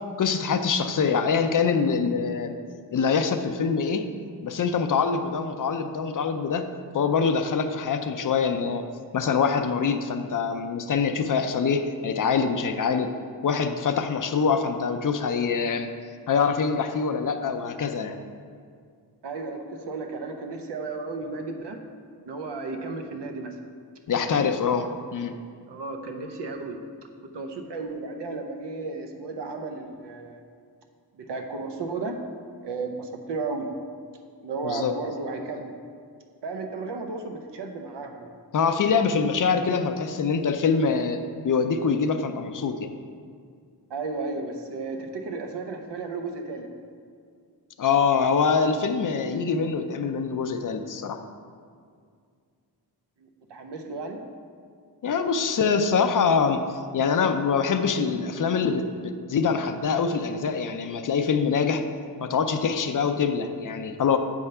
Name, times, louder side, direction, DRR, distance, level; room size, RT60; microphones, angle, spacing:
voice 1, 0.2-2.6 2.9-4.1 4.4-8.8 9.1-13.1 13.4-15.9 16.3-18.2 24.1-25.4 34.6-34.9 38.5-42.9 47.8-51.2 55.0-56.6 56.9-61.8 62.2-64.2, left 5 dB, 50° left, 7 dB, 0.5 m, -24 dB
voice 2, 19.2-21.8 22.3-23.6 24.3-24.5 25.7-26.8 27.2-30.4 31.1-32.2 32.6-33.7 34.4-35.7 36.4-38.3 43.9-46.7 53.2-54.2, right 3 dB, 80° right, 4 dB, 0.8 m, -34 dB
7.8 x 3.6 x 5.5 m, 2.2 s
wide cardioid pair, 115°, 41 cm